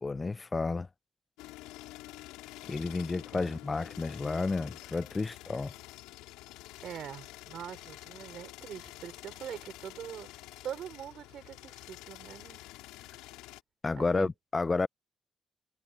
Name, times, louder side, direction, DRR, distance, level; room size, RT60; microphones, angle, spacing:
voice 1, 0.0-0.9 2.7-5.7 13.8-14.9, left 3 dB, 35° left, 0.7 m, -31 dB
sound 1, 1.4-13.6, left 18 dB, 90° left, 3.3 m, -48 dB
voice 2, 6.8-12.6 14.0-14.3, right 9 dB, 70° right, 5.0 m, -43 dB
supercardioid pair, 50°, 0 cm